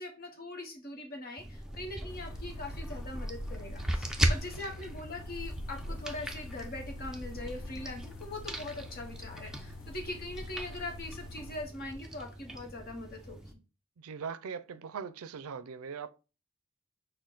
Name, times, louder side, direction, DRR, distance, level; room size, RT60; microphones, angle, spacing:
voice 1, 0.0-13.6, left 2 dB, 45° left, 1.1 m, -42 dB
sound 1, 1.4-13.5, right 1 dB, 5° right, 0.4 m, -38 dB
sound 2, 2.1-11.6, left 4 dB, 60° left, 0.6 m, -47 dB
voice 2, 14.0-16.1, right 6 dB, 75° right, 0.4 m, -40 dB
6.3 x 2.2 x 3.8 m
head